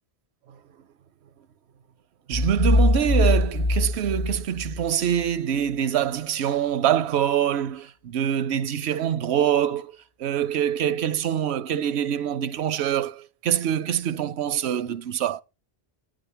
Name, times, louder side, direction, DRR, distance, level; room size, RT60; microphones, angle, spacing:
sound 1, 2.3-5.2, left 2 dB, 40° left, 0.8 m, -22 dB
voice 1, 2.3-9.9 10.2-15.4, right 10 dB, 80° right, 0.9 m, -25 dB
9.6 x 5.1 x 5.6 m
omnidirectional pair, 1.1 m